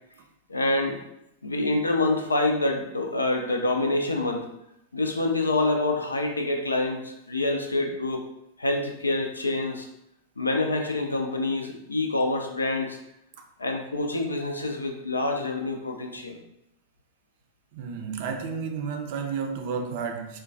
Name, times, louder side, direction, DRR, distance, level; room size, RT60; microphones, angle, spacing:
voice 1, 0.5-1.0 1.4-4.5 4.9-8.2 8.6-9.9 10.4-13.0 13.6-16.4, left 2 dB, 80° left, 3 dB, 0.4 m, -26 dB
voice 2, 17.7-20.4, right 6 dB, 50° right, 4 dB, 0.4 m, -31 dB
3.6 x 2.1 x 2.6 m, 0.81 s
figure-of-eight pair, 90°, 0 cm